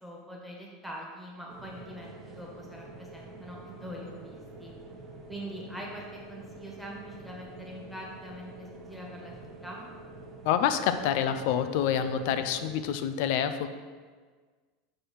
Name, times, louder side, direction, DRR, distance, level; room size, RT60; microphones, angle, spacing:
voice 1, 0.0-4.7 5.3-9.4 9.6-9.8, equal, ahead, -2 dB, 1.4 m, -43 dB
sound 1, 1.5-12.8, right 2 dB, 25° right, 1.1 m, -47 dB
voice 2, 10.4-13.7, left 9 dB, 65° left, 10 dB, 0.5 m, -27 dB
5.6 x 5.3 x 4.3 m, 1.5 s
supercardioid pair, 135°, 0 cm